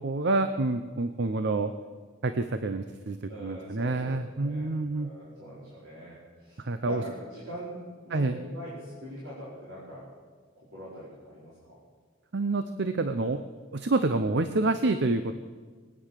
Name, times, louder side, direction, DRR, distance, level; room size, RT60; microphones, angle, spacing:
voice 1, 0.0-1.7 2.2-5.1 6.6-7.0 8.1-8.4 12.3-13.4 13.7-15.3, right 2 dB, 55° right, 9 dB, 0.7 m, -28 dB
voice 2, 3.3-10.1 10.7-11.8, equal, 75° right, -8 dB, 4.6 m, -43 dB
21.0 x 9.6 x 6.6 m, 1.5 s
head